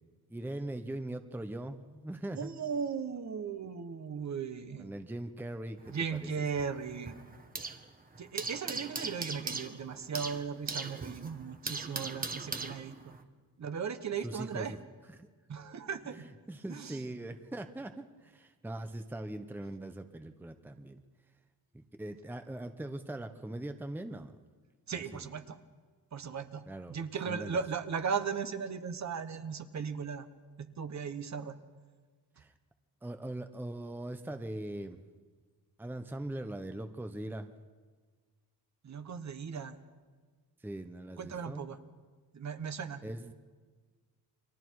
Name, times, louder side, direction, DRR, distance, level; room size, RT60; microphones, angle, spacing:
voice 1, 0.3-2.5 4.8-6.3 14.2-14.8 15.2-15.3 16.0-21.0 21.7-24.3 24.9-25.2 26.7-27.0 27.3-27.6 32.4-32.5 33.0-35.0 35.8-37.5 40.6-41.7 43.0-43.3, right 1 dB, 5° right, 8 dB, 0.8 m, -41 dB
voice 2, 2.3-4.9 5.9-7.2 8.2-13.1 13.6-14.7 15.5-16.3 16.7-17.0 24.9-25.6 26.1-30.3 30.6-31.5 38.8-39.8 41.2-41.8 42.3-43.0, right 6 dB, 45° right, 9 dB, 1.3 m, -37 dB
sound 1, 5.8-7.9 8.1-13.2, right 3 dB, 20° right, 1.3 m, -40 dB
29.5 x 24.0 x 4.7 m, 1.4 s
wide cardioid pair, 140°, 39 cm